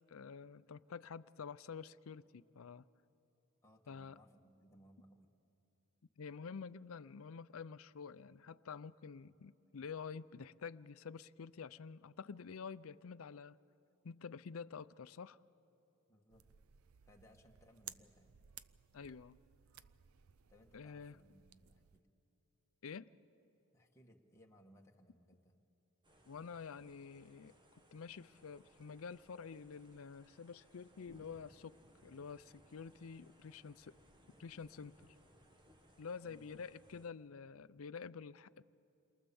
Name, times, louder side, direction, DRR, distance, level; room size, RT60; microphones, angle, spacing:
voice 1, 0.1-2.8 3.9-4.2 6.2-13.6 14.0-15.4 18.9-19.4 20.7-21.2 22.8-23.1 26.3-27.5 27.9-33.9 34.4-35.0 36.0-38.6, left 5 dB, 70° left, 0.5 m, -49 dB
voice 2, 3.6-5.3 16.1-16.5 17.1-18.4 20.5-22.1 23.7-25.6 36.2-36.5, equal, 15° left, 1.8 m, -65 dB
sound 1, 16.3-22.0, right 11 dB, 75° right, 0.5 m, -58 dB
sound 2, 26.0-37.1, equal, 20° right, 1.5 m, -66 dB
28.5 x 23.0 x 7.1 m
head